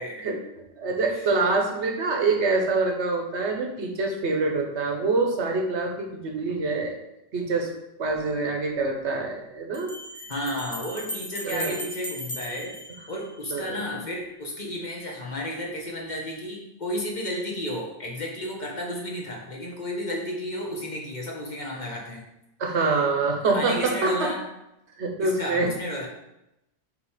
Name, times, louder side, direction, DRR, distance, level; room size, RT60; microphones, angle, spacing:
voice 1, 0.0-7.0 7.3-7.7 8.0-9.9 11.4-11.8 13.5-13.8 22.6-24.3 25.0-25.7, right 3 dB, 90° right, 2 dB, 1.3 m, -25 dB
sound 1, 8.1-8.2 9.7-13.7, left 1 dB, 25° left, 0.8 m, -37 dB
voice 2, 10.3-12.8 13.1-22.3 23.5-24.4 25.2-26.1, left 1 dB, 45° left, -2 dB, 1.3 m, -32 dB
5.8 x 3.4 x 4.9 m, 0.87 s
omnidirectional pair, 1.1 m